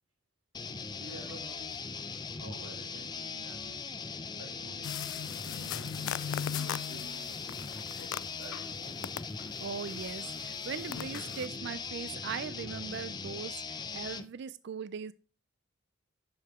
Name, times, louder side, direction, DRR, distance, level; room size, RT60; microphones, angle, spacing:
sound 1, 0.5-14.3, left 5 dB, 20° left, 0.5 m, -40 dB
voice 1, 0.9-3.9 4.3-5.8 6.3-7.4 8.2-9.2, right 2 dB, 90° right, 2.3 m, -51 dB
sound 2, 4.8-8.7 9.0-11.5, left 9 dB, 85° left, 0.3 m, -39 dB
voice 2, 9.6-15.1, right 6 dB, 55° right, 0.3 m, -40 dB
9.4 x 6.7 x 3.5 m
head